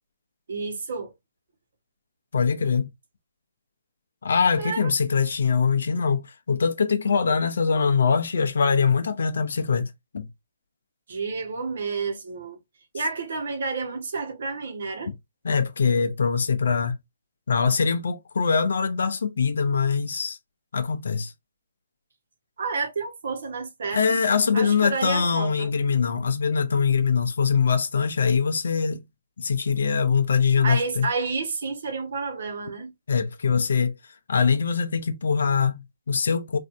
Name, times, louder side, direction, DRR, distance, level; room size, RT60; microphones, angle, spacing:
voice 1, 0.5-1.1 4.6-4.9 11.1-12.6 12.9-15.1 22.6-24.2 24.5-25.7 30.6-32.9, right 4 dB, 65° right, 1.1 m, -30 dB
voice 2, 2.3-2.9 4.2-10.3 15.1-15.2 15.4-17.0 17.5-20.4 20.7-21.3 23.9-29.0 29.4-31.1 33.1-33.9 34.3-36.6, left 5 dB, 65° left, 0.6 m, -23 dB
3.2 x 2.6 x 2.5 m
figure-of-eight pair, 140°, 0 cm